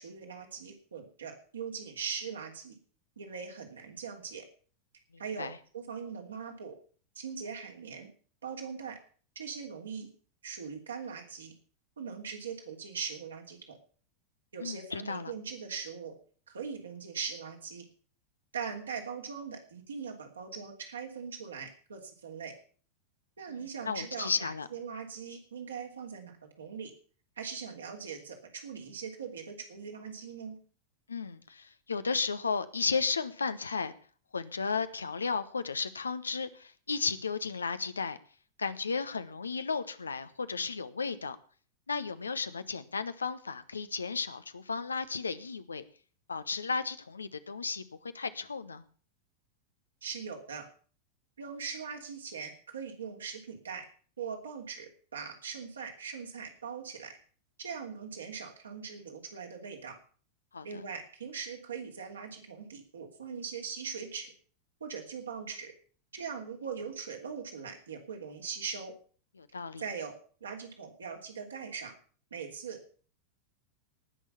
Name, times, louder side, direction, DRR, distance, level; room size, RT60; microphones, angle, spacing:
voice 1, 0.0-2.7 3.2-4.4 5.2-6.8 7.1-8.1 8.4-9.0 9.3-10.1 10.4-11.5 12.0-13.8 14.5-16.1 16.5-17.8 18.5-22.5 23.4-26.9 27.4-30.6 50.0-50.7 51.4-53.8 54.2-57.1 57.6-60.0 60.6-64.3 64.8-65.7 66.1-68.9 69.8-71.9 72.3-72.8, right 6 dB, 70° right, 2 dB, 3.1 m, -41 dB
voice 2, 14.6-15.3 23.5-24.7 31.1-33.9 34.3-38.2 38.6-41.4 41.9-45.8 46.3-48.8 60.5-60.9 69.4-69.8, left 5 dB, 75° left, 13 dB, 1.0 m, -34 dB
18.5 x 6.5 x 7.0 m, 0.43 s
figure-of-eight pair, 90°, 0 cm